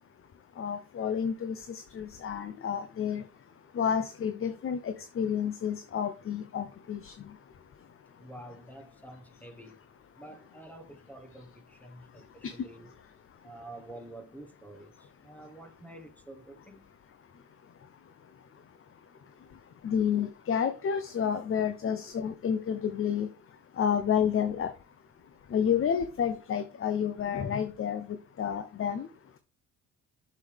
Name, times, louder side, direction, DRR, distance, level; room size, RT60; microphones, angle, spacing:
voice 1, 0.5-8.3 11.9-12.6 13.3-13.5 17.3-24.9 25.4-29.4, left 8 dB, 45° left, 0.8 m, -31 dB
voice 2, 8.2-9.8 10.2-12.9 13.4-16.9, right 1 dB, 5° left, 1.3 m, -48 dB
8.0 x 6.9 x 3.4 m
cardioid pair, 90°, 30 cm